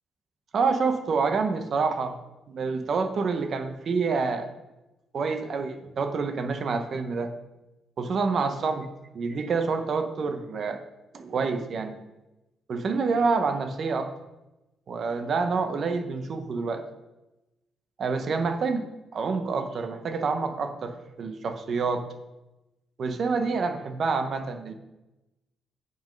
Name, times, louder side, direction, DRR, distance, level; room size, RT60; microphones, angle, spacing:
voice 1, 0.5-2.2 2.5-4.5 5.1-7.3 8.0-8.9 9.1-10.8 11.1-12.0 12.7-14.1 14.9-16.8 18.0-22.1 23.0-24.7, right 4 dB, 40° right, 7 dB, 0.8 m, -27 dB
7.9 x 6.2 x 5.2 m, 1.0 s
cardioid pair, 170°, 0 cm